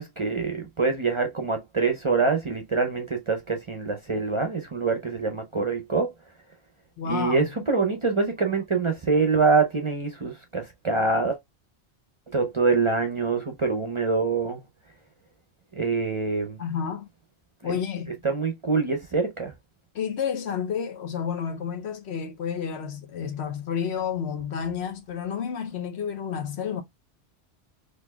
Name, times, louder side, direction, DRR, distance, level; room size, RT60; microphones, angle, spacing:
voice 1, 0.0-6.1 7.0-11.4 12.3-14.6 15.8-16.6 17.6-17.8 18.2-19.5, right 4 dB, 35° right, 0.5 m, -25 dB
voice 2, 7.0-7.5 16.6-17.1 17.6-18.2 19.9-26.8, left 7 dB, 70° left, 1.0 m, -30 dB
4.2 x 2.8 x 2.2 m
omnidirectional pair, 1.1 m